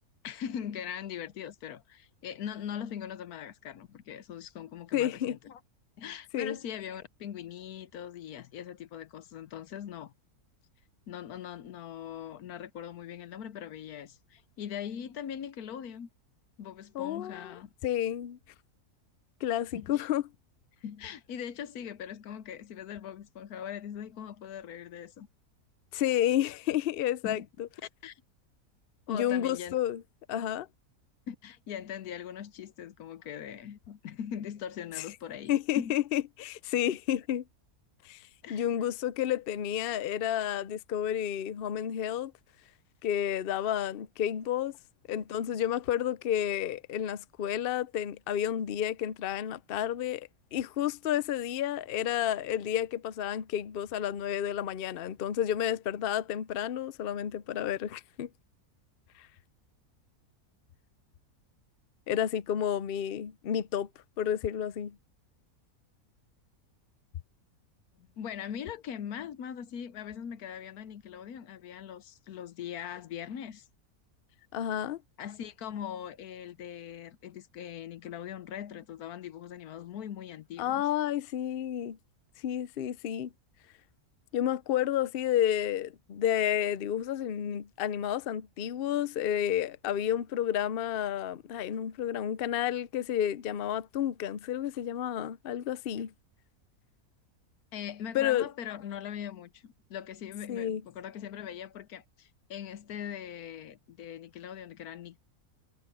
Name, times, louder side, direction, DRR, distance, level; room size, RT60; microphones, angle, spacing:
voice 1, 0.2-5.6 6.0-10.1 11.1-16.1 16.6-17.7 19.7-20.1 20.8-25.3 27.2-27.5 28.0-28.2 29.1-29.8 31.3-35.9 38.4-38.6 68.0-73.7 75.2-80.8 97.7-105.2, left 9 dB, 80° left, 1.3 m, -41 dB
voice 2, 4.9-5.4 6.3-6.6 16.9-17.5 17.8-18.4 19.4-20.2 25.9-27.7 29.1-30.0 30.3-30.7 35.5-37.4 38.0-42.3 43.0-44.8 45.1-58.3 59.2-59.3 62.1-63.9 64.2-65.0 74.5-75.0 80.6-82.0 82.4-83.3 84.3-96.1 98.1-98.5 100.5-100.8, left 10 dB, 60° left, 0.6 m, -31 dB
omnidirectional pair, 1.6 m